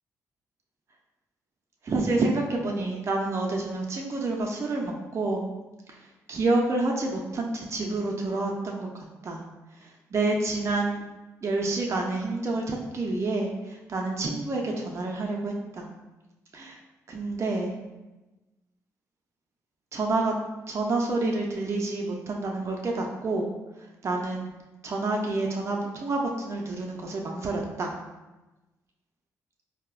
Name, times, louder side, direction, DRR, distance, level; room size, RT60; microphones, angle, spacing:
voice 1, 1.8-5.4 6.3-9.4 10.1-11.0 11.4-15.8 16.5-16.8 17.1-17.7 19.9-20.3 20.7-23.5 24.0-24.5 24.8-27.9, right 2 dB, 40° right, 0 dB, 0.4 m, -28 dB
4.2 x 2.0 x 2.3 m, 1.1 s
hypercardioid pair, 50°, 7 cm